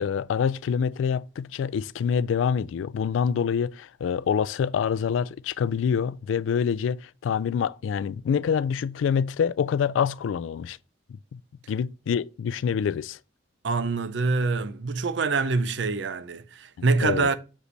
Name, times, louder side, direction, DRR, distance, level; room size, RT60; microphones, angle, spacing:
voice 1, 0.0-10.8 11.3-11.4 11.7-13.2 16.8-17.3, left 7 dB, 85° left, 0.3 m, -26 dB
voice 2, 13.6-17.3, right 4 dB, 70° right, 0.6 m, -25 dB
6.5 x 5.0 x 3.2 m
head